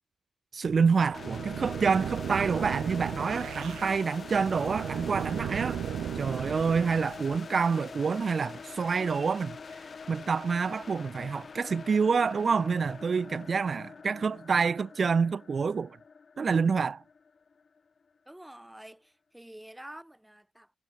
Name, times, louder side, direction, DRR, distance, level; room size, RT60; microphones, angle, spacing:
voice 1, 0.5-5.8 6.2-9.8 10.1-16.0 16.4-17.0, right 5 dB, 55° right, 3.6 m, -27 dB
sound 1, 0.7-7.4, right 9 dB, 85° right, 7.0 m, -36 dB
sound 2, 1.1-18.0, left 5 dB, 50° left, 2.8 m, -44 dB
voice 2, 18.3-20.8, right 1 dB, 10° right, 6.4 m, -48 dB
cardioid pair, 60°, 0 cm